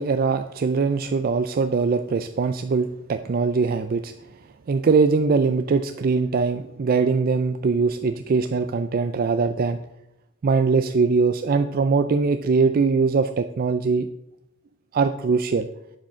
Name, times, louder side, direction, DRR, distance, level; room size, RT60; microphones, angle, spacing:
voice 1, 0.0-4.1 4.7-9.8 10.4-14.1 14.9-15.7, right 4 dB, 45° right, 9 dB, 0.4 m, -22 dB
10.5 x 5.1 x 6.2 m, 0.87 s
head